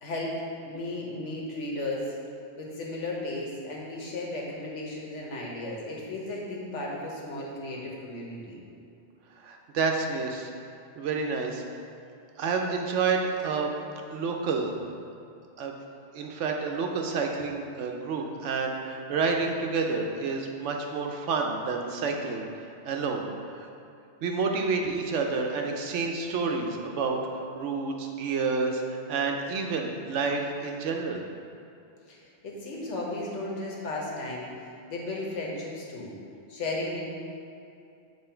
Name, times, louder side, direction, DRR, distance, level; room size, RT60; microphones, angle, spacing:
voice 1, 0.0-2.2 2.6-8.6 32.1-32.2 32.4-36.1 36.5-37.1, left 2 dB, 80° left, -3 dB, 1.4 m, -35 dB
voice 2, 9.4-10.5 11.0-11.6 12.4-13.7 14.1-14.7 15.6-15.7 16.1-22.5 22.9-23.7 24.2-27.2 27.5-31.2, right 4 dB, 85° right, 2 dB, 1.0 m, -29 dB
7.6 x 3.1 x 4.4 m, 2.7 s
omnidirectional pair, 1.2 m